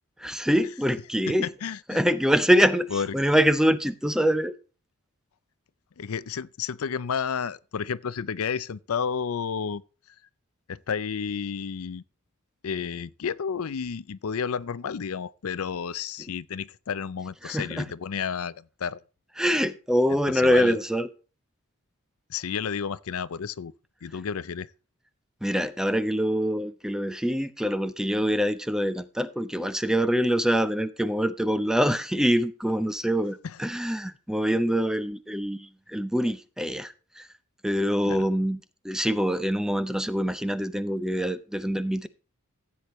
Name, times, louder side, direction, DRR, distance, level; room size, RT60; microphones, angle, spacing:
voice 1, 0.2-1.5 1.9-2.9 3.1-4.5 17.4-17.9 19.4-21.1 25.4-37.3 37.6-38.6 38.8-42.1, equal, 5° right, 0.6 m, -25 dB
voice 2, 1.3-2.0 2.9-3.1 6.0-9.8 10.7-12.0 12.6-19.0 20.1-20.8 22.3-23.7 24.0-24.7 33.4-33.6 38.0-38.3, left 6 dB, 75° left, 0.5 m, -31 dB
14.5 x 8.5 x 3.1 m
head